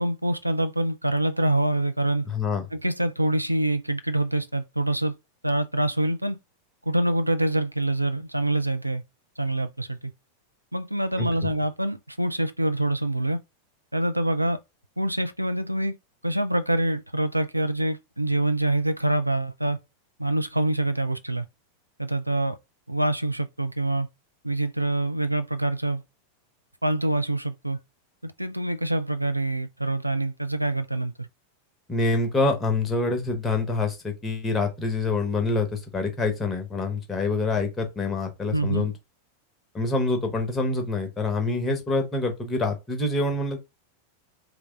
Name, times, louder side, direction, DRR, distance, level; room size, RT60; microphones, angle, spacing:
voice 1, 0.0-2.3 2.7-5.2 5.4-6.4 6.9-9.0 9.4-10.1 10.7-13.4 13.9-14.6 15.0-16.0 16.2-19.8 20.2-21.5 22.0-22.6 22.9-24.1 24.4-26.0 26.8-27.8 28.2-31.3 38.5-38.9, right 1 dB, 85° right, 0.3 m, -25 dB
voice 2, 2.3-2.6 11.2-11.3 31.9-38.9 39.7-43.6, left 3 dB, 15° left, 1.1 m, -26 dB
3.3 x 2.3 x 3.3 m
figure-of-eight pair, 90°, 0 cm